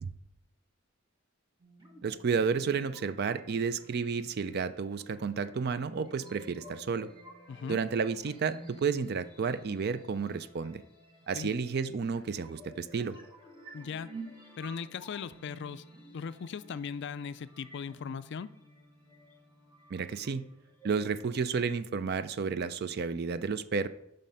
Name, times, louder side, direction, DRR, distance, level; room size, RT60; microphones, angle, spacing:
sound 1, 1.6-21.6, right 1 dB, 20° right, 1.3 m, -52 dB
voice 1, 2.0-7.1 7.7-10.8 11.3-13.2 19.9-20.4 20.8-23.9, right 5 dB, 50° right, 13 dB, 0.4 m, -31 dB
voice 2, 7.5-7.8 11.3-11.5 13.7-14.1 14.6-18.5, left 6 dB, 55° left, 14 dB, 0.3 m, -39 dB
7.3 x 5.4 x 5.6 m, 0.82 s
head